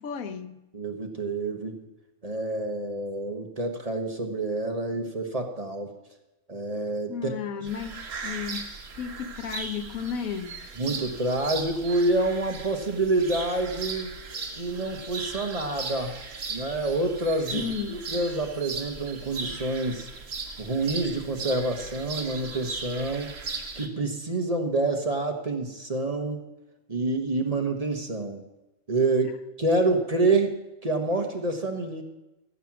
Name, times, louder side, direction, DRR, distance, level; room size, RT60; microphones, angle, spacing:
voice 1, 0.0-0.6 7.1-10.6 17.5-18.0 29.2-29.3 30.3-30.5, left 7 dB, 90° left, 1.2 m, -34 dB
voice 2, 0.7-1.8 2.2-5.9 6.5-7.7 10.8-14.2 14.6-16.1 16.5-20.1 20.6-23.3 23.7-26.4 26.9-28.4 28.9-30.5 30.8-32.0, right 2 dB, 30° right, 1.1 m, -27 dB
sound 1, 7.7-23.9, right 4 dB, 65° right, 1.7 m, -37 dB
15.0 x 7.5 x 6.0 m
omnidirectional pair, 1.4 m